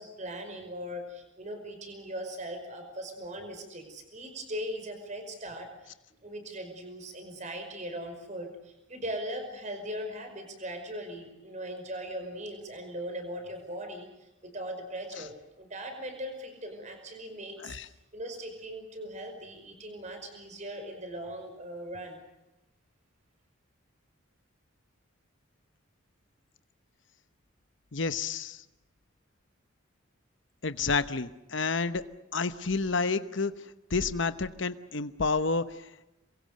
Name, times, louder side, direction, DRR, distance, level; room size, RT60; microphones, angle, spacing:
voice 1, 0.0-5.9 6.2-17.8 18.1-22.2, equal, 35° right, 6 dB, 5.3 m, -39 dB
voice 2, 27.9-28.6 30.6-32.0 32.3-33.5 33.9-35.9, left 4 dB, 65° left, 11 dB, 1.0 m, -29 dB
27.0 x 23.0 x 6.8 m, 0.92 s
head